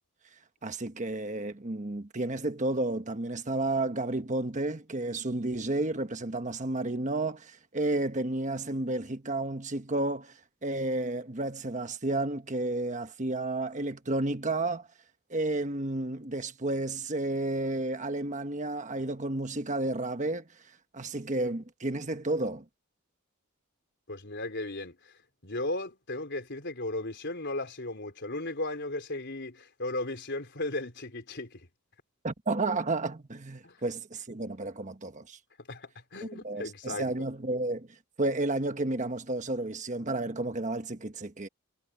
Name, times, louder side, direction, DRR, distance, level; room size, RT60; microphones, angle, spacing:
voice 1, 0.6-10.3 10.6-14.9 15.3-20.5 20.9-22.6 32.2-35.4 36.4-37.9 38.2-41.5, right 2 dB, 35° right, 1.3 m, -31 dB
voice 2, 24.1-25.1 25.4-31.6 33.6-33.8 35.7-37.1, left 2 dB, 55° left, 4.1 m, -36 dB
head